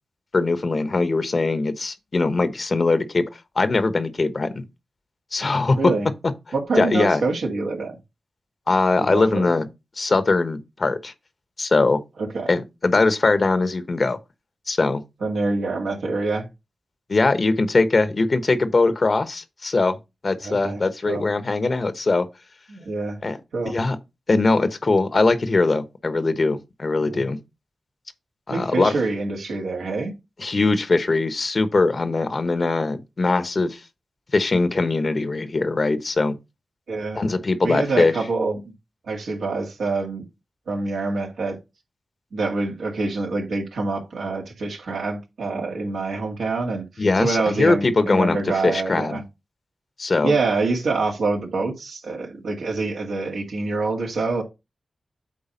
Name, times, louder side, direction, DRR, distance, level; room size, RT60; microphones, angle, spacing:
voice 1, 0.3-3.3 3.5-4.6 5.3-5.9 6.8-7.2 8.7-9.7 10.0-11.1 11.6-12.0 12.5-14.2 14.7-15.0 17.1-20.0 20.2-22.3 23.2-23.4 23.6-24.0 24.3-27.4 28.5-28.9 30.4-33.8 34.3-36.4 37.2-38.1 47.0-49.2 50.0-50.4, left 3 dB, 55° left, 1.1 m, -21 dB
voice 2, 5.8-6.1 6.5-8.0 9.1-9.4 12.2-12.5 15.2-16.5 20.4-20.8 21.1-21.2 22.7-23.2 23.5-23.8 27.1-27.2 28.5-30.1 36.9-37.2 37.6-38.7 39.1-40.3 40.7-41.6 42.3-46.8 47.2-49.2 50.2-54.4, right 3 dB, 90° right, 2.0 m, -26 dB
8.7 x 3.4 x 5.3 m
cardioid pair, 45°, 0 cm